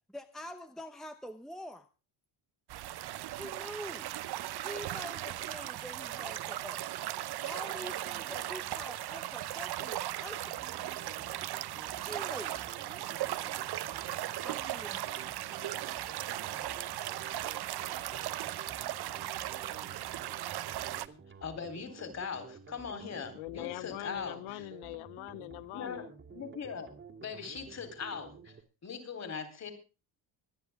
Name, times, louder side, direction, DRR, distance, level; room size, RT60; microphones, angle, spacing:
voice 1, 0.1-1.9 3.4-4.1 4.6-6.8 7.4-10.6 12.1-12.6 14.4-15.0, equal, ahead, 0.9 m, -45 dB
sound 1, 2.7-21.1, right 14 dB, 55° right, 0.8 m, -37 dB
sound 2, 10.5-28.6, right 5 dB, 25° right, 2.1 m, -52 dB
voice 2, 21.4-24.7 25.7-26.0 26.3-26.9 27.2-28.5 28.8-29.7, left 6 dB, 35° left, 3.7 m, -40 dB
voice 3, 23.3-26.1, left 20 dB, 85° left, 0.6 m, -42 dB
25.0 x 9.8 x 3.5 m
cardioid pair, 155°, 48 cm